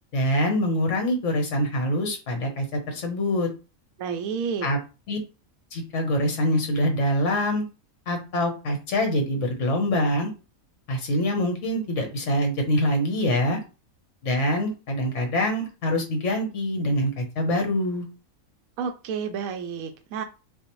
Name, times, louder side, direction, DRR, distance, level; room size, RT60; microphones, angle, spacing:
voice 1, 0.1-3.5 4.6-4.8 5.1-5.2 5.7-7.6 8.1-10.3 10.9-13.6 14.2-18.1, equal, 60° left, 4 dB, 1.4 m, -25 dB
voice 2, 4.0-4.7 18.8-20.2, right 6 dB, 75° right, 6 dB, 1.0 m, -30 dB
6.2 x 2.4 x 3.1 m, 0.32 s
omnidirectional pair, 1.5 m